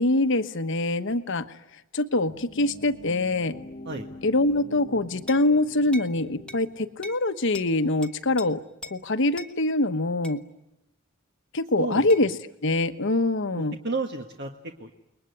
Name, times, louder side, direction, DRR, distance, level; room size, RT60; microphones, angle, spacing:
voice 1, 0.0-1.5 1.9-3.6 4.2-10.4 11.5-12.3 12.6-13.8, left 2 dB, 65° left, 10 dB, 1.2 m, -24 dB
sound 1, 2.3-7.3, left 2 dB, 40° left, 1.0 m, -45 dB
sound 2, 5.3-5.5 5.9-6.1 6.5-6.6 7.0-7.2 7.5-7.7 8.0-8.5 8.8-9.0 9.4-9.5 10.2-10.4 12.1-12.3, left 1 dB, 5° left, 1.2 m, -41 dB
voice 2, 13.5-14.9, right 3 dB, 55° right, 3 dB, 1.6 m, -32 dB
29.5 x 21.0 x 9.7 m, 0.91 s
head